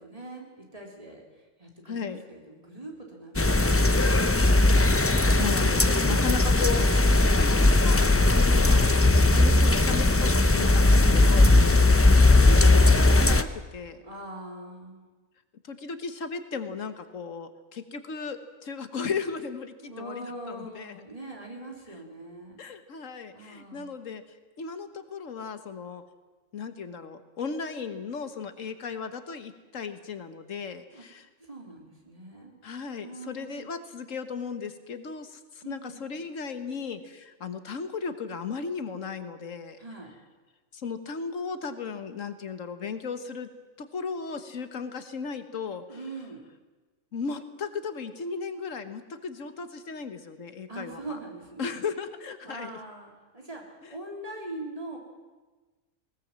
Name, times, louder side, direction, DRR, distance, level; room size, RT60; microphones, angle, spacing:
voice 1, 0.0-5.4 11.3-11.6 14.0-15.1 19.8-22.6 23.3-23.9 30.9-31.0 31.4-32.5 33.0-33.7 35.6-36.2 39.8-40.1 45.9-46.4 50.7-51.8 52.4-55.0, right 2 dB, 30° right, 0 dB, 3.7 m, -42 dB
voice 2, 1.9-2.2 5.3-9.0 9.3-11.5 12.2-14.0 15.7-21.0 22.6-24.2 24.6-26.0 26.5-31.3 32.6-39.8 40.7-43.5 43.8-45.8 47.1-51.0 51.6-52.7, left 5 dB, 90° left, 9 dB, 1.7 m, -36 dB
sound 1, 3.4-13.4, left 2 dB, 20° left, 0.4 m, -19 dB
20.0 x 19.0 x 7.5 m, 1.3 s
omnidirectional pair, 1.3 m